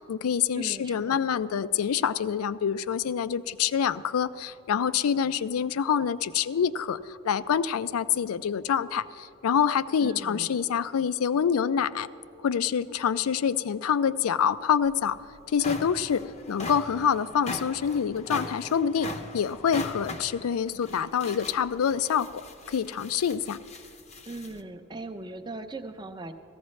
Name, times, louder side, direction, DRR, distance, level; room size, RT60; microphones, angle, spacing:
voice 1, 0.0-12.1 12.4-15.2 15.5-23.6, left 7 dB, 85° left, 15 dB, 0.4 m, -26 dB
voice 2, 0.6-1.2 10.0-10.5 24.3-26.3, right 2 dB, 20° right, 8 dB, 0.5 m, -39 dB
sound 1, 14.9-15.0 15.4-24.6, left 3 dB, 30° left, 0.6 m, -40 dB
17.0 x 15.0 x 3.2 m, 2.5 s
head